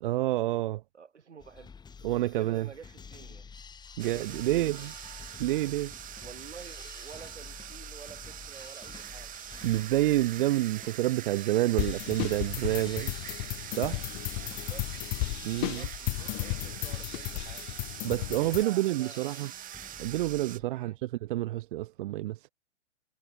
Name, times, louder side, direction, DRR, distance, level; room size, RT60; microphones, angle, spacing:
voice 1, 0.0-0.8 2.0-2.7 4.0-4.9 5.4-5.9 9.6-13.1 13.7-14.0 15.4-15.9 18.0-19.5 20.0-22.5, right 16 dB, 50° right, 0.8 m, -28 dB
voice 2, 0.9-1.8 2.3-3.5 4.0-4.9 6.2-9.3 14.4-14.9 15.5-17.6 18.5-19.5 20.7-21.0, right 6 dB, 80° right, 6.1 m, -50 dB
sound 1, 1.4-20.7, left 5 dB, 10° left, 2.7 m, -50 dB
sound 2, 4.0-20.6, right 12 dB, 25° right, 2.2 m, -44 dB
sound 3, 11.8-18.6, left 37 dB, 35° left, 1.1 m, -34 dB
hypercardioid pair, 115°, 34 cm